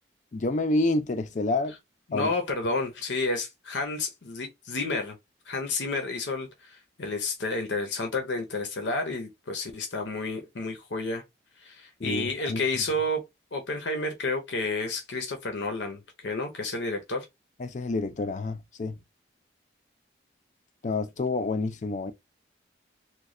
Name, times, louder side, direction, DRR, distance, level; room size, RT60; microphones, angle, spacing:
voice 1, 0.3-1.8 2.1-2.3 12.0-12.6 17.6-19.0 20.8-22.1, left 2 dB, 40° left, 0.4 m, -28 dB
voice 2, 2.1-5.2 5.5-11.2 11.6-13.2 13.5-17.3, left 2 dB, 75° left, 0.7 m, -30 dB
3.1 x 2.2 x 3.7 m
head